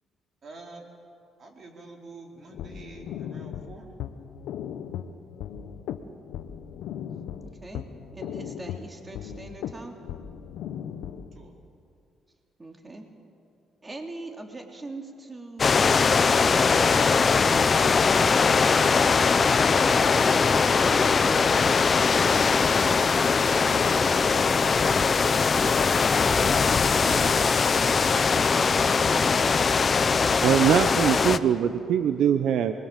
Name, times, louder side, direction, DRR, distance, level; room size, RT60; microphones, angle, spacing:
voice 1, 0.4-0.9 1.4-3.9 11.3-11.5, right 3 dB, 50° right, 1 dB, 4.6 m, -46 dB
sound 1, 2.4-11.5, left 9 dB, 85° left, 1.2 m, -37 dB
voice 2, 8.1-10.0 12.6-13.1 13.8-15.9 20.3-21.6 22.0-25.0 25.4-27.4 29.1-29.9, right 2 dB, 25° right, 3 dB, 3.1 m, -42 dB
sound 2, 15.6-31.4, left 5 dB, 40° left, 0.9 m, -21 dB
voice 3, 30.4-32.7, right 9 dB, 75° right, 9 dB, 0.9 m, -22 dB
27.0 x 22.0 x 7.6 m, 2.5 s
cardioid pair, 90°, 0 cm